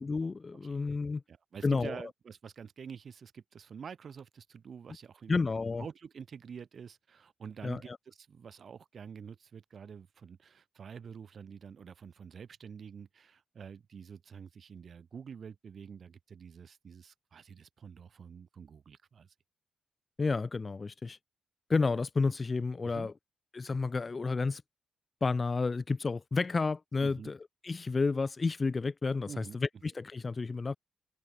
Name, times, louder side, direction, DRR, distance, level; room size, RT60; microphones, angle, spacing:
voice 1, 0.1-1.2 1.6-2.0 5.3-5.8 7.6-8.0 20.2-21.2 21.7-23.1 23.5-24.6 25.2-27.4 27.6-30.8, left 4 dB, 30° left, 0.4 m, -31 dB
voice 2, 1.3-5.4 5.8-19.3 22.8-23.1 27.0-27.3 29.2-29.6, right 6 dB, 50° right, 4.5 m, -47 dB
cardioid pair, 125°, 0 cm